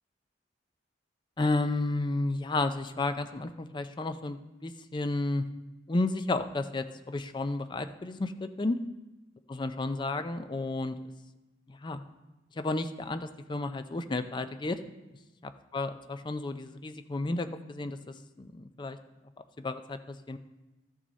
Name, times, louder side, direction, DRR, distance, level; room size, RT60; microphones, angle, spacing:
voice 1, 1.4-5.4 5.9-8.8 9.5-11.0 11.7-12.0 12.6-14.8 15.7-19.0 19.6-20.4, left 2 dB, 25° left, 9 dB, 0.5 m, -32 dB
13.0 x 6.2 x 4.1 m, 1.1 s
head